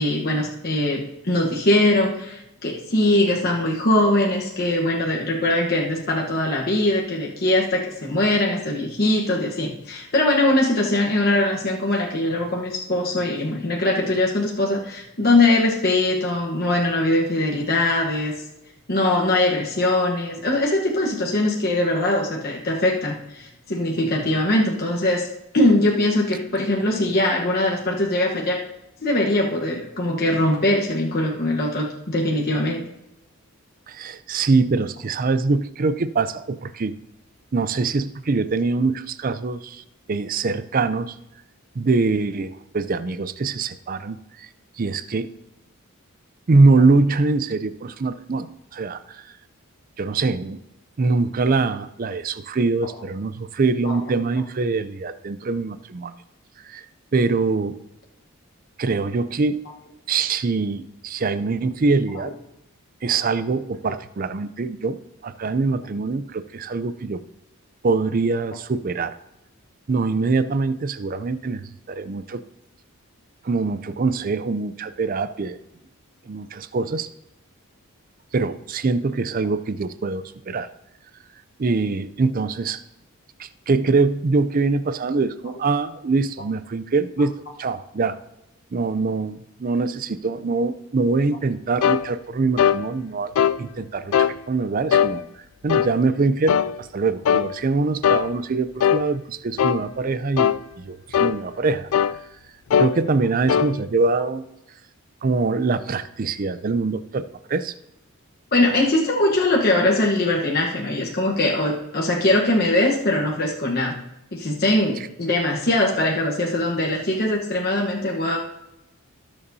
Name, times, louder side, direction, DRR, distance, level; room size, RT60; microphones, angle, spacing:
voice 1, 0.0-18.3 18.9-25.3 25.5-28.6 29.0-32.9 53.8-54.0 108.5-114.0 114.3-118.4, left 1 dB, 45° left, -2 dB, 1.1 m, -21 dB
voice 2, 33.9-37.0 37.5-41.2 41.8-44.5 44.8-45.3 46.5-49.3 50.0-50.6 51.0-56.1 56.6-56.8 57.1-57.8 58.8-59.6 60.1-62.3 63.0-67.2 67.8-69.1 69.9-71.6 71.9-72.4 73.4-75.6 76.3-77.1 78.3-80.7 81.6-82.8 83.4-88.2 88.7-93.3 93.6-95.2 95.6-101.9 102.8-104.4 105.2-107.7, right 3 dB, 40° right, 13 dB, 0.4 m, -23 dB
sound 1, 91.8-92.0 92.6-92.8 93.4-93.6 94.1-94.4 94.9-95.1 95.7-95.9 96.5-96.7 97.3-97.5 98.0-98.3 98.8-99.0 99.6-99.8 100.4-100.6 101.1-101.4 101.9-102.2 102.7-102.9 103.5-103.7, left 8 dB, 70° left, 0.3 m, -19 dB
18.0 x 6.9 x 2.7 m, 0.91 s
head